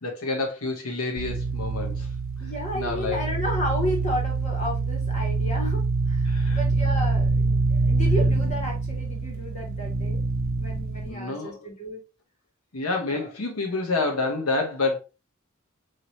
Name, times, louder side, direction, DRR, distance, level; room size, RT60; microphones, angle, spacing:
voice 1, 0.0-2.1 2.7-3.2 6.3-6.6 11.1-11.6 12.7-15.0, left 3 dB, 90° left, 1.1 m, -28 dB
sound 1, 1.2-11.1, right 3 dB, 45° right, 0.7 m, -25 dB
voice 2, 2.4-10.2 10.5-12.0 13.1-13.3, equal, 35° left, 1.6 m, -33 dB
4.8 x 3.0 x 2.9 m
head